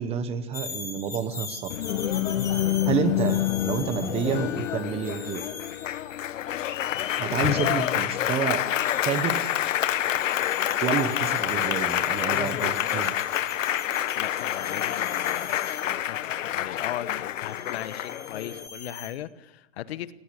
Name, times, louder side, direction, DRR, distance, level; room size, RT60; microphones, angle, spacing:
voice 1, 0.0-1.7 2.9-5.4 7.2-8.6 9.0-9.4 10.8-13.1, right 8 dB, 15° right, 1.0 m, -29 dB
sound 1, 0.5-6.4 8.5-15.9 17.4-19.1, left 4 dB, 10° left, 2.5 m, -42 dB
Applause, 1.7-18.7, left 12 dB, 85° left, 1.1 m, -27 dB
voice 2, 13.9-20.1, left 12 dB, 55° left, 1.1 m, -38 dB
19.0 x 17.5 x 8.3 m
supercardioid pair, 165°, 37 cm